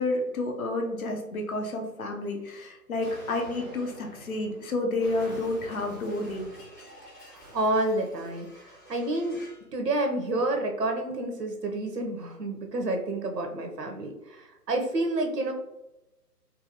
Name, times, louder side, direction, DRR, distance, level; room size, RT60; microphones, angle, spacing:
voice 1, 0.0-6.5, left 2 dB, 60° left, 2 dB, 0.8 m, -30 dB
Explosion, 3.0-9.7, right 1 dB, 10° left, 0.6 m, -47 dB
voice 2, 7.3-9.4 9.7-15.5, right 2 dB, 85° right, 3 dB, 0.9 m, -29 dB
4.0 x 2.3 x 2.8 m, 0.96 s
figure-of-eight pair, 140°, 48 cm